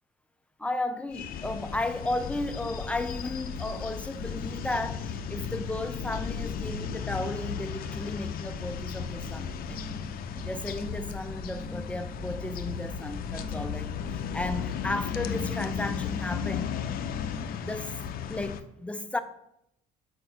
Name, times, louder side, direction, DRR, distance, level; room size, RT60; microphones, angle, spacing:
voice 1, 0.6-9.8 10.4-16.8 17.6-17.9 18.3-19.2, left 2 dB, 5° left, 0.4 m, -34 dB
sound 1, 1.1-18.6, left 8 dB, 60° left, 0.5 m, -35 dB
sound 2, 3.0-17.7, left 2 dB, 40° right, 2.1 m, -42 dB
4.6 x 4.3 x 5.5 m
cardioid pair, 110°, 17 cm